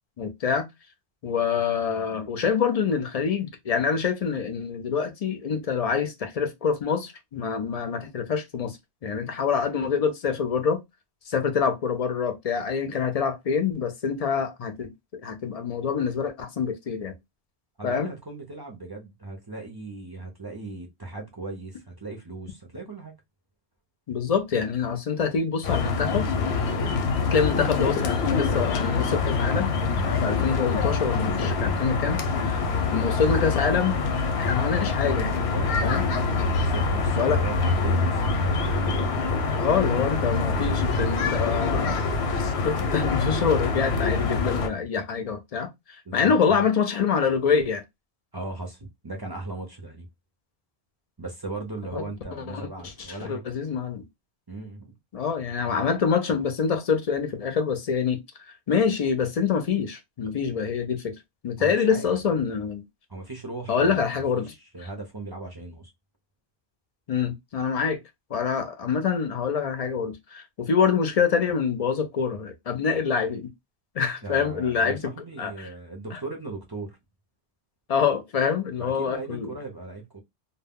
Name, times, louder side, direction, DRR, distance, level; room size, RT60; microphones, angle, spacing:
voice 1, 0.2-0.7 1.2-8.8 9.0-10.8 11.3-17.1 17.8-18.1 24.1-26.3 27.3-29.7 30.2-32.6 32.9-33.9 34.4-35.3 35.8-36.0 37.2-37.4 39.5-42.0 42.3-47.8 51.9-52.0 52.5-52.7 53.0-54.0 55.1-58.2 58.7-61.2 61.4-62.8 63.7-64.5 67.1-68.0 68.3-73.5 74.0-75.1 75.4-75.7 76.1-76.2 77.9-79.5, left 6 dB, 55° left, 0.4 m, -26 dB
voice 2, 17.8-23.1 35.5-36.0 36.5-38.5 46.1-46.3 48.3-50.1 51.2-53.4 54.5-55.0 61.6-62.1 63.1-65.9 74.2-77.0 78.8-80.2, right 3 dB, 30° right, 0.4 m, -38 dB
sound 1, 25.6-44.7, left 4 dB, 90° left, 0.8 m, -25 dB
2.2 x 2.1 x 3.4 m
omnidirectional pair, 1.1 m